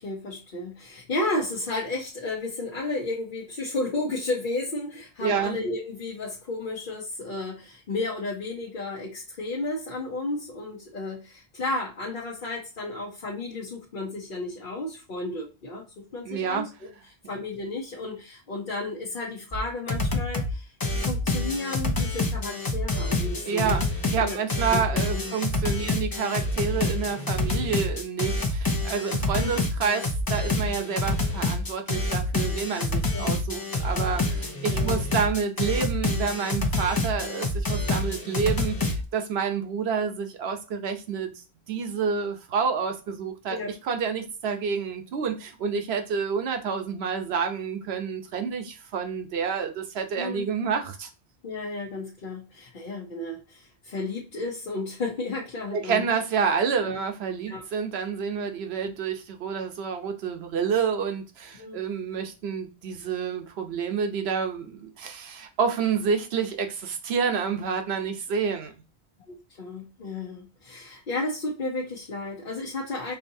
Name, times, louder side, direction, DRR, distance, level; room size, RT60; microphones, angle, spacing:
voice 1, 0.0-16.9 17.3-20.7 21.0-23.8 24.2-24.4 24.7-24.8 25.1-25.3 25.8-26.0 29.4-29.7 33.1-33.3 34.7-35.1 43.5-43.7 50.2-50.5 51.4-56.0 56.9-57.0 57.5-57.6 58.8-58.9 61.6-61.8 69.3-73.1, left 2 dB, 55° left, 0.9 m, -33 dB
voice 2, 5.2-5.6 16.2-16.6 23.5-23.8 24.1-41.3 41.7-43.6 43.8-51.1 55.7-68.7, right 6 dB, 70° right, 1.0 m, -28 dB
sound 1, 19.5-19.6 19.9-20.5 20.8-39.0, left 2 dB, 25° left, 0.5 m, -27 dB
4.6 x 2.7 x 2.7 m
omnidirectional pair, 1.1 m